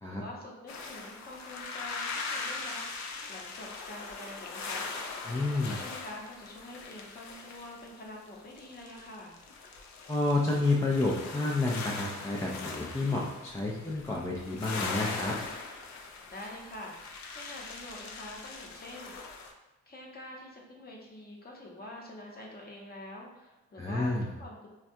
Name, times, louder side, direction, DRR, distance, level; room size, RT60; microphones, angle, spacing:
voice 1, 0.1-4.9 5.5-9.4 16.3-16.9 17.3-19.3 19.9-24.7, left 1 dB, 30° left, -2 dB, 0.8 m, -46 dB
sound 1, 0.7-19.5, left 4 dB, 65° left, 0.5 m, -41 dB
voice 2, 5.3-5.8 10.1-15.4 23.8-24.2, left 2 dB, 10° left, -3 dB, 0.4 m, -30 dB
3.4 x 2.2 x 2.6 m, 1.1 s
cardioid pair, 90°, 30 cm